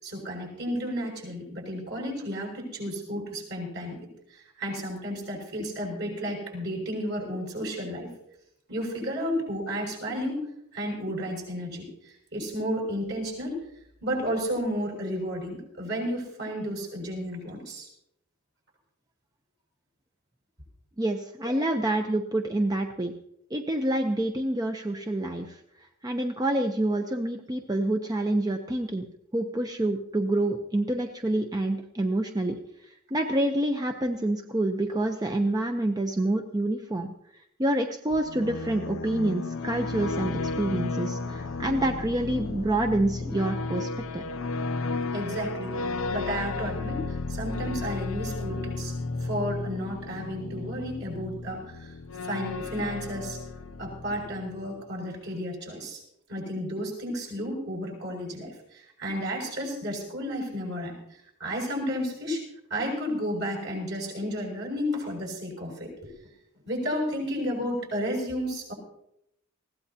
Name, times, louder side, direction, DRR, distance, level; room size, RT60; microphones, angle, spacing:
voice 1, 0.0-4.0 4.3-8.1 8.7-10.4 10.7-13.6 14.0-17.9 21.4-21.5 45.1-45.8 46.1-48.9 49.2-51.9 52.2-53.4 53.8-56.0 56.3-62.4 62.7-66.1 66.6-68.7, equal, 55° right, -1 dB, 6.4 m, -32 dB
voice 2, 21.0-23.1 23.5-25.6 26.0-29.1 29.3-32.6 33.1-37.1 37.6-44.2, right 1 dB, 20° right, 4 dB, 0.7 m, -27 dB
sound 1, 38.1-54.7, left 3 dB, 75° left, 0.6 m, -33 dB
20.5 x 16.0 x 2.9 m, 0.76 s
head